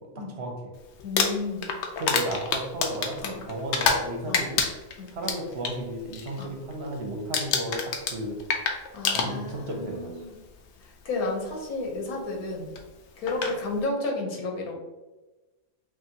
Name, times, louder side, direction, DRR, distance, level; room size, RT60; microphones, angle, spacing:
voice 1, 0.1-0.7 2.0-4.6 5.1-8.4 9.1-10.1, right 1 dB, 55° right, 1 dB, 0.9 m, -34 dB
voice 2, 1.0-1.7 3.2-3.4 4.3-4.5 5.0-5.1 6.4-6.6 8.9-10.3 11.0-12.7 13.2-14.7, left 2 dB, 85° left, 1 dB, 1.4 m, -32 dB
Crumpling crinkling, 1.0-4.1 4.3-5.7 6.1-6.4 6.7-7.0 7.3-9.7 10.7-10.8 12.8-12.9 13.3-13.6, left 5 dB, 60° left, 0.8 m, -27 dB
5.7 x 2.6 x 2.8 m, 1.1 s
omnidirectional pair, 1.5 m